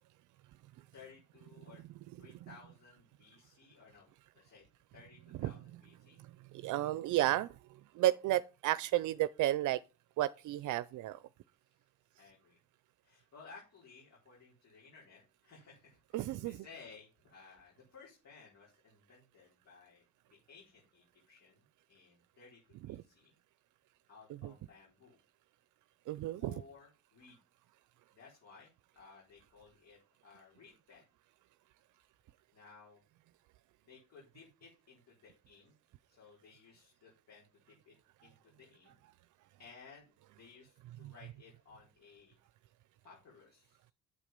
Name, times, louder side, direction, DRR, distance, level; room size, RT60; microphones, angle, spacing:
voice 1, 0.9-1.8 2.2-4.7 4.9-6.2 12.2-12.6 13.0-23.4 24.1-25.2 26.4-27.4 28.1-31.0 32.5-33.0 33.8-35.7 36.1-37.9 38.2-39.0 39.6-40.1 40.3-42.4 43.0-43.8, left 5 dB, 60° left, 4.4 m, -58 dB
voice 2, 6.5-7.6 7.9-9.8 10.2-11.2 16.1-16.6 22.9-23.0 24.4-24.5 26.1-26.5 41.0-41.1, right 14 dB, 80° right, 0.5 m, -32 dB
8.4 x 8.0 x 5.2 m
cardioid pair, 90°, 30 cm